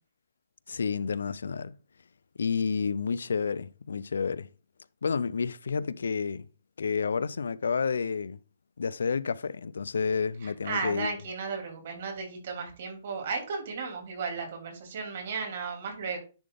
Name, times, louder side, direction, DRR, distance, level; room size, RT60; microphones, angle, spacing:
voice 1, 0.7-1.7 2.4-4.5 5.0-6.5 6.8-8.4 8.8-11.1, left 5 dB, 90° left, 0.4 m, -30 dB
voice 2, 10.4-16.2, right 4 dB, 60° right, 2.9 m, -35 dB
10.0 x 3.5 x 3.8 m
hypercardioid pair, 145°, 0 cm